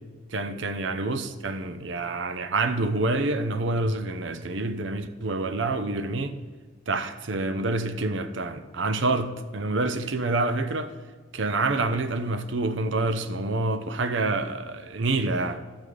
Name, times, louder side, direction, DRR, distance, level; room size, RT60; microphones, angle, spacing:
voice 1, 0.3-6.3 6.9-10.9 11.3-15.6, right 2 dB, 75° right, 0.7 m, -27 dB
10.5 x 8.1 x 5.0 m
head